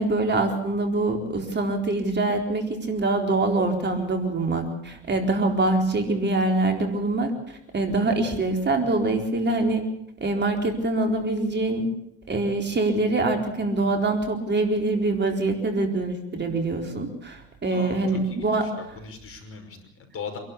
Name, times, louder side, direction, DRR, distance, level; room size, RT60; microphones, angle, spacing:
voice 1, 0.0-9.9 10.2-11.9 12.3-18.7, right 2 dB, 35° right, 4 dB, 4.1 m, -24 dB
voice 2, 17.7-18.7 19.0-20.4, left 5 dB, 45° left, 6 dB, 5.7 m, -39 dB
27.0 x 12.0 x 8.5 m, 0.77 s
hypercardioid pair, 75°, 33 cm